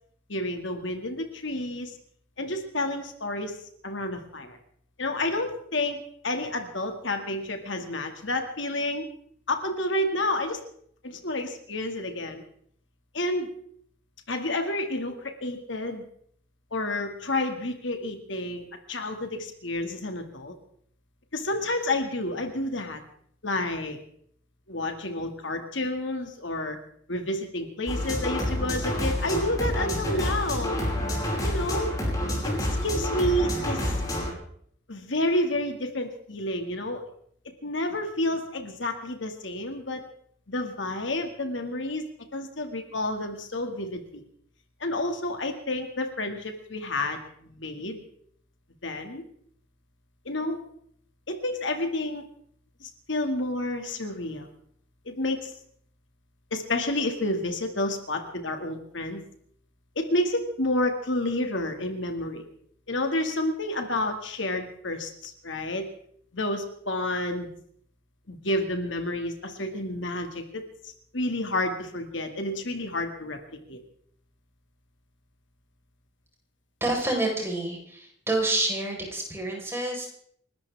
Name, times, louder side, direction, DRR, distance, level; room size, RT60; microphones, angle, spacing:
voice 1, 0.3-2.0 2.4-3.6 3.8-4.6 5.0-9.1 9.5-10.6 11.0-12.4 13.1-13.5 14.3-16.0 16.7-20.5 21.3-23.0 23.4-24.0 24.7-26.8 27.1-31.0 31.4-31.9 32.4-34.0 34.9-37.0 37.6-40.0 40.5-42.0 42.3-44.2 44.8-48.0 48.8-49.2 50.3-50.6 51.3-52.2 52.8-54.5 55.1-55.5 56.5-59.2 60.0-62.4 62.9-65.9 66.3-67.5 68.3-70.6 71.1-73.4 73.7-73.8, left 1 dB, 70° left, 5 dB, 2.2 m, -30 dB
sound 1, 27.9-34.3, left 1 dB, 20° left, 5.5 m, -28 dB
voice 2, 76.8-80.1, right 2 dB, 15° right, -1 dB, 4.6 m, -28 dB
29.5 x 13.0 x 3.6 m, 0.65 s
head